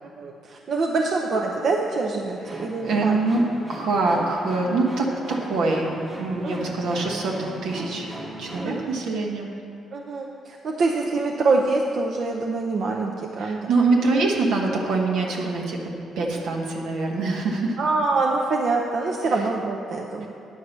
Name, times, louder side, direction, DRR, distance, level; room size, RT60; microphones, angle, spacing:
voice 1, 0.0-3.2 6.4-6.7 8.6-8.9 9.9-13.7 16.2-16.4 17.8-20.3, right 3 dB, 60° right, 0 dB, 0.6 m, -25 dB
sound 1, 2.4-8.8, right 1 dB, 25° right, 1.4 m, -37 dB
voice 2, 2.5-3.4 3.7-8.1 8.4-9.5 13.4-15.8 16.2-17.8, right 3 dB, 85° right, -1 dB, 1.3 m, -24 dB
9.5 x 4.7 x 6.6 m, 2.5 s
cardioid pair, 90°, 0 cm